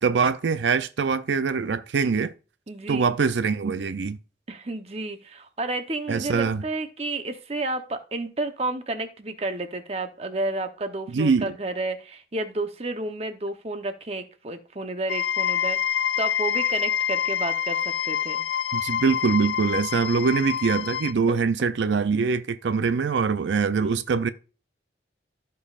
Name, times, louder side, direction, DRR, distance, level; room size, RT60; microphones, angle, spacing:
voice 1, 0.0-2.3 2.9-4.2 6.1-6.6 11.1-11.5 18.7-24.3, right 5 dB, 85° right, 0.5 m, -23 dB
voice 2, 2.7-3.1 4.5-18.4 21.3-21.4 23.8-23.9, right 2 dB, 35° right, 0.9 m, -31 dB
sound 1, 15.1-21.1, left 9 dB, 85° left, 0.5 m, -26 dB
15.5 x 5.4 x 2.4 m
head